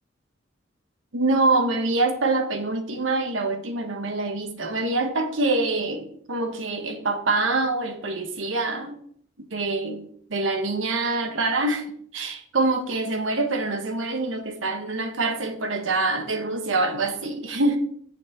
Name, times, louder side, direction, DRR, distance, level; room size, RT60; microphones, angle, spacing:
voice 1, 1.1-9.0 9.5-11.8 12.1-17.8, right 2 dB, 80° right, 1.1 m, -25 dB
6.8 x 4.6 x 5.4 m
head